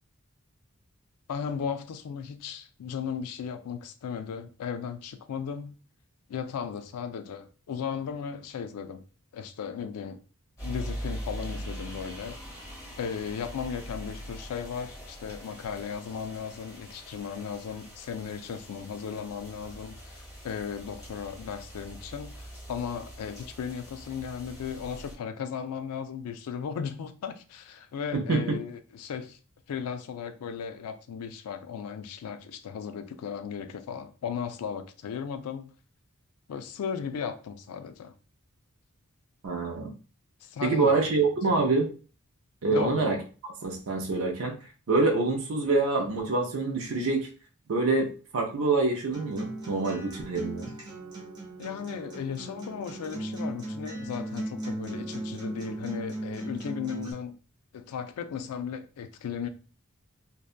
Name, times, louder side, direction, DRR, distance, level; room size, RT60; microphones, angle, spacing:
voice 1, 1.3-5.7 6.3-9.0 9.3-10.2 10.6-12.4 13.0-29.4 29.7-35.7 36.5-38.1 40.4-41.0 41.6-41.7 42.7-43.2 51.6-57.4 57.7-59.5, left 7 dB, 80° left, 0.3 m, -36 dB
sound 1, 10.6-25.1, equal, 15° left, 0.9 m, -42 dB
voice 2, 39.4-39.9 40.6-41.9 42.6-43.2 43.4-44.5 44.9-47.3 47.7-50.7, right 3 dB, 60° right, 0.4 m, -26 dB
Acoustic guitar, 49.1-57.1, right 1 dB, 20° right, 0.6 m, -37 dB
2.7 x 2.2 x 2.4 m
head